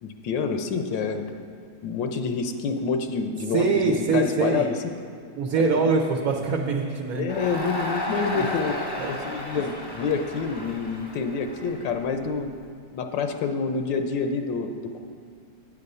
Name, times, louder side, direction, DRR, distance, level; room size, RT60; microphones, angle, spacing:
voice 1, 0.0-1.3 1.8-4.8 5.6-5.9 7.1-8.7 9.1-12.5 12.9-15.0, left 5 dB, 80° left, 6 dB, 1.3 m, -28 dB
voice 2, 3.5-4.7 5.4-7.3 8.3-8.4 8.9-9.1, right 4 dB, 60° right, 0 dB, 1.1 m, -23 dB
Crowd, 7.3-12.5, left 1 dB, 20° left, 0.7 m, -33 dB
8.9 x 7.8 x 5.4 m, 2.3 s
omnidirectional pair, 2.0 m